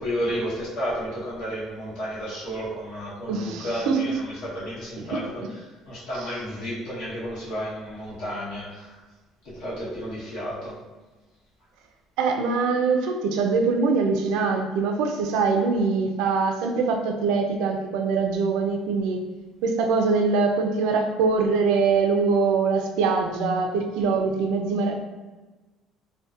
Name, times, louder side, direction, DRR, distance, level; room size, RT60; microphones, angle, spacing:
voice 1, 0.0-9.0 9.4-10.8, equal, 70° left, -8 dB, 1.0 m, -32 dB
voice 2, 3.3-4.0 5.0-5.2 12.2-19.3 19.6-25.0, right 4 dB, 80° right, 4 dB, 0.3 m, -23 dB
2.5 x 2.1 x 2.4 m, 1.2 s
cardioid pair, 170°, 0 cm